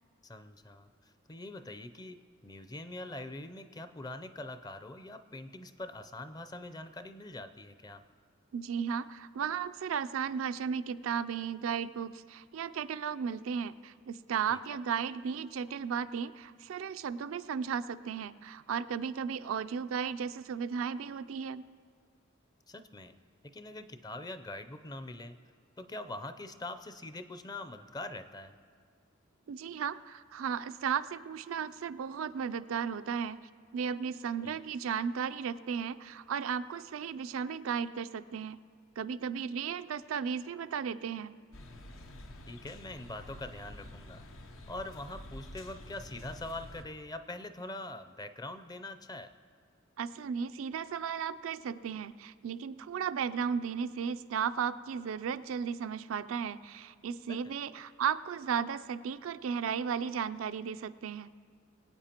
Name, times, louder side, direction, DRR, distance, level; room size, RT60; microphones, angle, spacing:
voice 1, 0.2-8.0 14.5-14.8 22.7-23.2 23.5-25.4 25.8-28.6 34.4-34.6 42.5-44.2 44.7-49.3 57.3-57.5, left 2 dB, 20° left, 10 dB, 0.5 m, -43 dB
voice 2, 8.5-21.6 29.5-33.4 33.7-38.6 39.0-41.3 50.0-61.3, right 7 dB, 85° right, 12 dB, 0.4 m, -35 dB
sound 1, 41.5-46.8, left 1 dB, 80° left, 0.9 m, -48 dB
23.0 x 8.8 x 2.9 m, 2.1 s
head